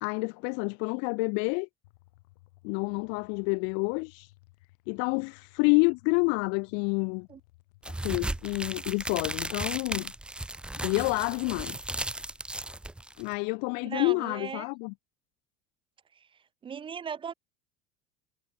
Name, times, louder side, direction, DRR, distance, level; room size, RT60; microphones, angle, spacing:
voice 1, 0.0-1.7 2.6-4.3 4.9-7.3 8.0-10.1 10.8-11.8 13.2-14.9, left 40 dB or more, 65° left, 0.6 m, -28 dB
sound 1, 1.8-9.8, left 21 dB, 85° left, 3.8 m, -60 dB
sound 2, 7.8-13.3, right 1 dB, 5° right, 0.9 m, -35 dB
voice 2, 13.8-14.6 16.1-16.3 16.6-17.3, right 7 dB, 25° right, 1.1 m, -37 dB
supercardioid pair, 125°, 20 cm